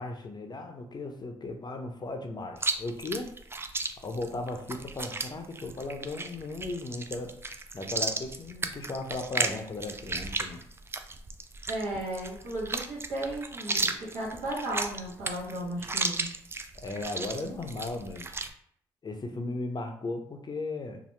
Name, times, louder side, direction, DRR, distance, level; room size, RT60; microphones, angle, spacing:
voice 1, 0.0-3.3 4.0-7.3 7.7-10.6 16.8-18.4 19.0-21.0, left 2 dB, 35° left, 4 dB, 0.6 m, -36 dB
Chewing mastication, 2.6-18.5, right 3 dB, 20° right, 0.3 m, -35 dB
voice 2, 11.7-16.3, right 1 dB, 80° right, -4 dB, 1.2 m, -35 dB
2.9 x 2.0 x 3.2 m, 0.64 s
supercardioid pair, 55°, 12 cm